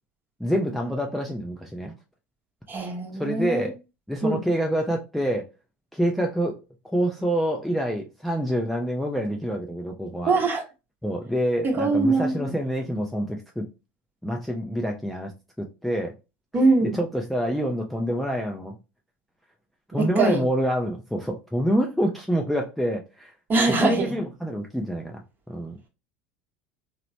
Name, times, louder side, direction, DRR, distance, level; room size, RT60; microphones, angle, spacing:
voice 1, 0.4-1.9 3.1-3.8 4.1-5.5 5.9-6.6 6.9-10.3 11.0-13.6 14.2-15.3 15.6-16.1 16.8-18.8 19.9-23.3 23.8-25.2 25.5-25.8, equal, ahead, 0.5 m, -26 dB
voice 2, 2.7-3.7 4.2-4.5 10.3-10.6 11.6-12.5 16.5-17.0 19.9-20.4 23.5-24.1, right 3 dB, 30° right, 1.0 m, -22 dB
2.9 x 2.0 x 2.7 m
hypercardioid pair, 85°, 6 cm